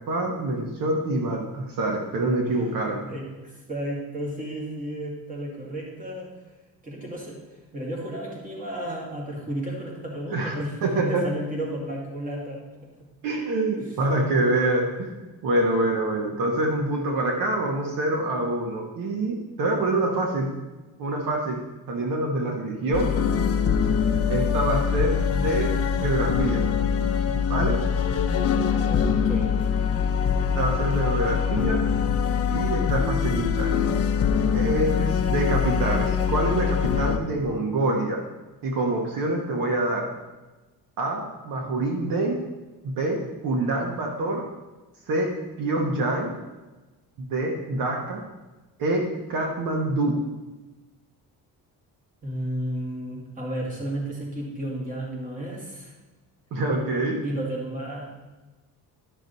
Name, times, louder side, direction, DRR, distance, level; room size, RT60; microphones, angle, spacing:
voice 1, 0.1-3.1 10.3-10.5 10.8-11.2 13.2-15.1 15.4-20.5 21.0-21.6 21.9-23.1 24.3-25.7 26.0-26.6 27.5-27.8 30.4-31.8 32.4-33.7 34.5-38.2 38.6-40.1 41.0-42.4 42.8-44.4 45.1-45.3 45.6-46.3 47.2-48.2 48.8-50.2 56.5-57.2, right 2 dB, 65° right, 1 dB, 1.5 m, -26 dB
voice 2, 2.4-6.3 6.8-12.6 13.7-14.0 28.8-29.6 52.2-55.9 57.2-58.0, right 1 dB, 20° right, -2 dB, 2.1 m, -33 dB
sound 1, 22.9-37.2, left 7 dB, 40° left, 0.6 m, -23 dB
11.5 x 6.1 x 4.1 m, 1.2 s
cardioid pair, 165°, 36 cm